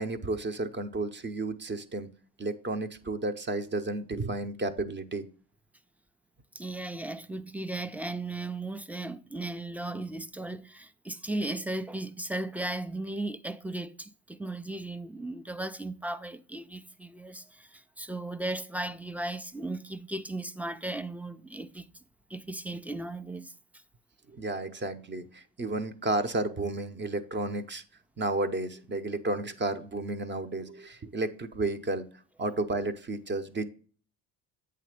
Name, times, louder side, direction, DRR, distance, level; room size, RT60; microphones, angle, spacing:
voice 1, 0.0-2.1 2.4-5.3 24.3-27.8 28.2-32.0 32.4-33.6, right 2 dB, 25° right, 0.7 m, -32 dB
voice 2, 6.5-21.9 22.3-23.5, right 2 dB, 5° right, 0.3 m, -36 dB
8.3 x 3.4 x 5.0 m
supercardioid pair, 65°, 42 cm